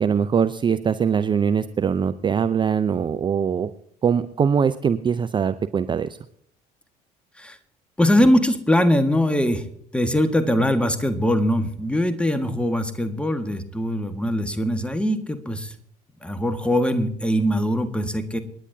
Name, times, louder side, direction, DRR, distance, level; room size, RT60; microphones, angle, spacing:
voice 1, 0.0-3.7 4.0-6.1, right 7 dB, 25° right, 12 dB, 0.5 m, -22 dB
voice 2, 8.0-9.7 9.9-15.7 16.2-18.4, equal, 5° left, 10 dB, 1.4 m, -22 dB
28.5 x 10.0 x 2.7 m, 0.66 s
figure-of-eight pair, 60°, 20 cm